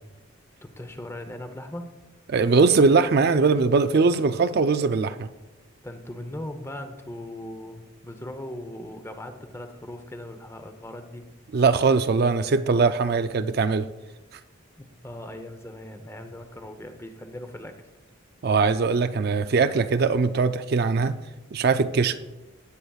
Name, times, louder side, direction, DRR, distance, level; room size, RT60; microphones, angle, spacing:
voice 1, 0.6-2.0 5.8-11.3 14.8-17.8, left 1 dB, 15° left, 7 dB, 0.8 m, -39 dB
voice 2, 2.3-5.3 11.5-13.9 18.4-21.2 21.5-22.2, right 4 dB, 50° right, 10 dB, 0.4 m, -21 dB
17.5 x 8.3 x 2.4 m, 1.1 s
head